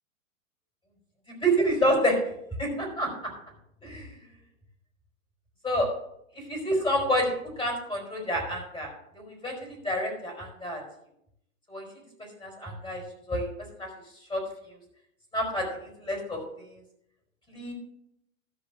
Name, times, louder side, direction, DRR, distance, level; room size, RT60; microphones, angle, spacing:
voice 1, 1.4-2.2 2.6-3.1 3.8-4.0 5.6-5.9 6.5-7.3 7.6-8.9 9.1-9.5 9.8-10.8 11.7-11.8 12.4-13.0 13.3-13.5 13.8-13.9 14.3-14.4 15.3-15.6 16.0-16.4 17.5-17.7, equal, 10° left, 0 dB, 4.8 m, -27 dB
14.0 x 5.0 x 7.2 m, 0.76 s
hypercardioid pair, 110°, 40 cm